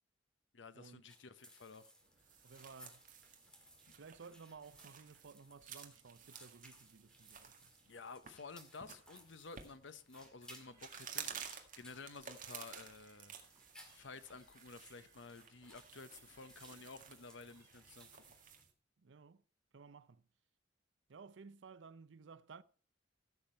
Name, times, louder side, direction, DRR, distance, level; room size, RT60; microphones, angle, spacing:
voice 1, 0.5-1.9 7.8-13.3 13.9-18.2, left 4 dB, 75° left, 0.9 m, -53 dB
sound 1, 1.1-18.6, equal, 5° left, 2.0 m, -63 dB
sound 2, 2.0-18.7, right 8 dB, 45° right, 1.8 m, -54 dB
voice 2, 2.4-3.0 3.9-7.7 19.0-19.4 19.7-20.3 21.1-22.6, right 5 dB, 70° right, 0.6 m, -56 dB
sound 3, 10.6-18.0, right 3 dB, 15° right, 4.0 m, -72 dB
15.5 x 7.2 x 4.4 m
head